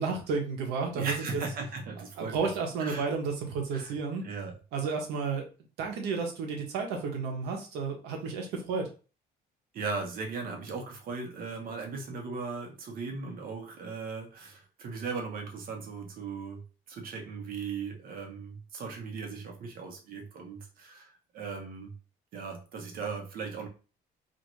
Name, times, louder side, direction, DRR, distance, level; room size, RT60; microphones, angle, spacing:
voice 1, 0.0-1.4 2.2-4.2 4.7-5.4 5.8-8.9, right 5 dB, 90° right, 2 dB, 0.9 m, -32 dB
voice 2, 0.9-2.5 2.8-3.1 3.7-4.0 4.2-4.6 9.7-21.9 22.3-23.7, right 4 dB, 60° right, 3 dB, 1.0 m, -38 dB
2.6 x 2.5 x 3.0 m, 0.34 s
cardioid pair, 110°, 17 cm